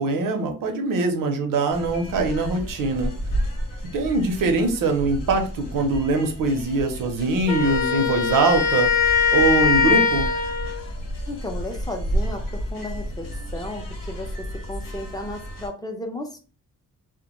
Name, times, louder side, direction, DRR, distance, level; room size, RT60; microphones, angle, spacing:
voice 1, 0.0-3.1 3.9-8.9 9.3-10.3, right 3 dB, 75° right, 5 dB, 0.7 m, -22 dB
sound 1, 1.7-15.7, equal, 90° left, 0.9 m, -32 dB
Wind instrument woodwind instrument, 7.5-10.8, left 6 dB, 70° left, 0.5 m, -21 dB
voice 2, 11.3-13.3 13.5-16.4, left 1 dB, 10° left, 3 dB, 0.5 m, -34 dB
2.2 x 2.1 x 2.9 m, 0.36 s
cardioid pair, 115°, 33 cm